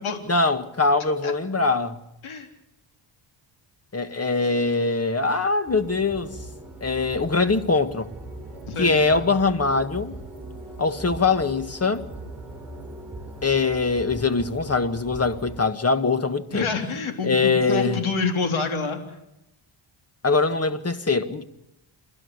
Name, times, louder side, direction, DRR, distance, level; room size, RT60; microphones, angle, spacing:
voice 1, 0.3-2.0 3.9-6.4 6.8-8.1 8.8-10.2 10.8-12.1 13.4-16.7 17.2-18.0 20.2-21.5, left 3 dB, 30° left, 1.8 m, -22 dB
sound 1, 5.7-15.6, right 1 dB, 5° right, 7.5 m, -40 dB
voice 2, 8.7-9.2 16.5-19.0, left 4 dB, 75° left, 3.7 m, -27 dB
29.0 x 12.5 x 9.7 m
cardioid pair, 80°, 49 cm